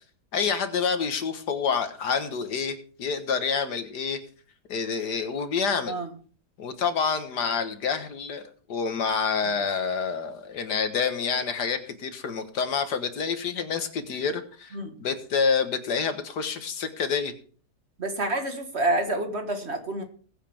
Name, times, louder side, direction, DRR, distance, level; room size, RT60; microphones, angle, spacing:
voice 1, 0.3-4.2 4.7-6.0 6.6-8.4 8.7-17.3, left 6 dB, 85° left, 8 dB, 2.0 m, -28 dB
voice 2, 14.7-15.1 18.0-20.0, right 1 dB, 40° right, 6 dB, 1.8 m, -28 dB
21.0 x 8.4 x 3.5 m, 0.42 s
omnidirectional pair, 1.7 m